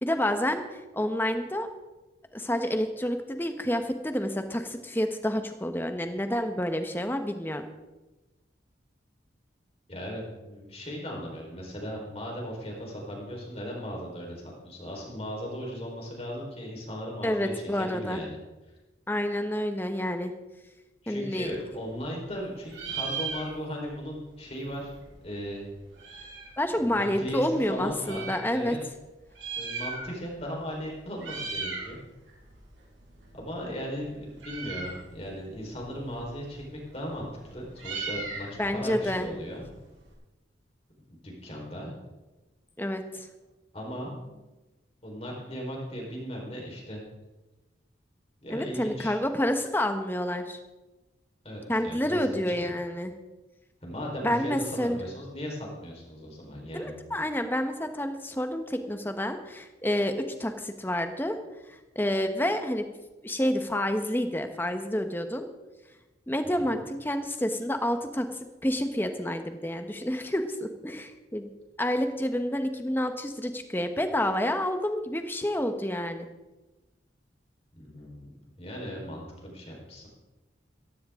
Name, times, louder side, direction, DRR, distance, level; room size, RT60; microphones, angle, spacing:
voice 1, 0.0-1.7 2.3-7.7 17.2-18.2 19.1-20.3 21.1-21.5 26.6-28.8 38.6-39.3 42.8-43.3 48.5-50.6 51.7-53.1 54.2-55.0 56.7-61.4 61.7-62.9 63.2-65.5 66.3-68.3 68.6-71.5 71.8-76.3, left 1 dB, 10° left, 7 dB, 1.1 m, -29 dB
voice 2, 9.9-18.4 21.0-24.9 25.2-25.6 26.7-28.8 29.6-32.0 33.3-39.6 41.1-41.9 43.7-44.5 45.0-47.0 48.4-49.2 51.4-52.7 53.8-56.9 66.6-66.7 77.8-80.1, equal, 30° left, -1 dB, 4.2 m, -37 dB
Meow, 21.4-22.4 22.6-23.9 24.2-24.3 24.5-26.6 27.2-28.4 29.2-30.4 30.7-30.9 31.2-31.9 32.3-40.1, right 4 dB, 80° right, 6.0 m, -38 dB
15.5 x 15.5 x 3.7 m, 1.1 s
head